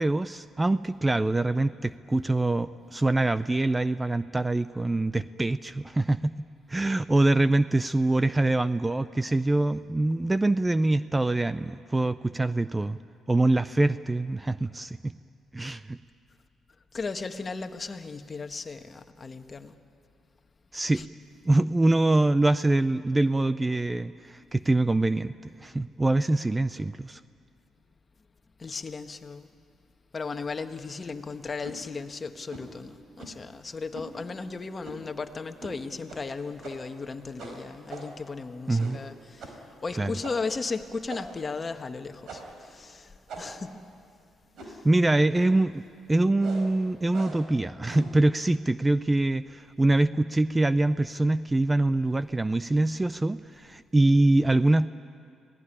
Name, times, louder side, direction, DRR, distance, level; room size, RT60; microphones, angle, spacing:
voice 1, 0.0-6.3 6.7-13.0 13.3-15.1 15.5-16.0 20.7-21.0 21.5-25.3 25.6-27.2 38.7-39.0 40.0-40.1 44.8-45.8 46.1-54.9, right 2 dB, 15° right, 14 dB, 0.5 m, -24 dB
voice 2, 16.9-19.7 20.9-21.1 28.6-29.5 30.1-43.7 44.6-44.8, left 4 dB, 30° left, 7 dB, 1.4 m, -36 dB
sound 1, 31.6-31.8 32.5-32.7 33.2-33.5 33.9-34.1 34.8-35.1 35.6-35.8 36.1-36.2 36.6-37.0 37.4-38.3 38.8-39.1 39.4-39.6 40.2-40.5 41.1-41.5 42.3-42.6 43.3-43.7 44.5-44.9 45.3-45.6 46.4-46.7 47.1-47.5 47.9-48.2, right 3 dB, 70° right, 4.8 m, -42 dB
26.0 x 18.0 x 10.0 m, 2.4 s
cardioid pair, 90°, 0 cm